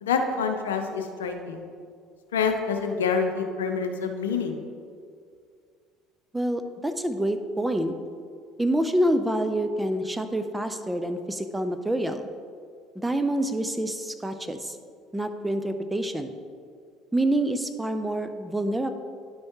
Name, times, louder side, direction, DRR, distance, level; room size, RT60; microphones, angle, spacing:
voice 1, 0.0-1.6 2.3-4.6, left 5 dB, 85° left, 5 dB, 0.6 m, -27 dB
voice 2, 6.3-7.9 8.6-12.3 13.0-14.8 15.1-16.3 17.1-18.9, right 1 dB, 10° right, 8 dB, 0.6 m, -27 dB
10.5 x 6.3 x 3.0 m, 2.2 s
hypercardioid pair, 65°, 0 cm